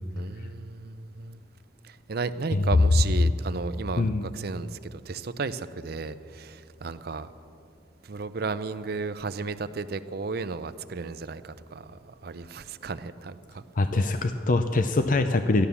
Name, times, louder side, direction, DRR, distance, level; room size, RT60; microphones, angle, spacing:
voice 1, 0.1-1.4 1.8-7.3 8.0-13.6, right 4 dB, 60° right, 12 dB, 0.6 m, -34 dB
voice 2, 4.0-4.3 13.8-15.7, left 2 dB, 50° left, 8 dB, 0.5 m, -24 dB
14.0 x 11.5 x 7.1 m, 2.4 s
head